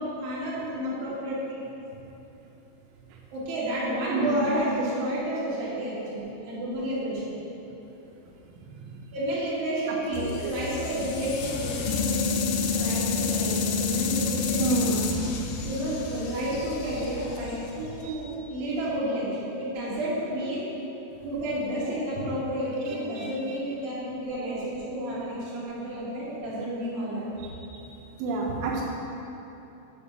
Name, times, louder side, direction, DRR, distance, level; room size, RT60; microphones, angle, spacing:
voice 1, 0.0-1.6 3.3-7.3 9.1-14.9 15.6-20.7 21.2-27.3, equal, 55° right, -9 dB, 3.4 m, -31 dB
voice 2, 4.1-4.5 8.6-9.0 10.1-10.5 14.6-15.1 18.0-18.2 22.9-23.3 27.6-27.9 28.2-28.8, right 3 dB, 85° right, -1 dB, 3.1 m, -30 dB
sound 1, 10.1-18.2, left 5 dB, 85° left, 3.0 m, -29 dB
7.9 x 4.3 x 6.6 m, 3.0 s
omnidirectional pair, 5.5 m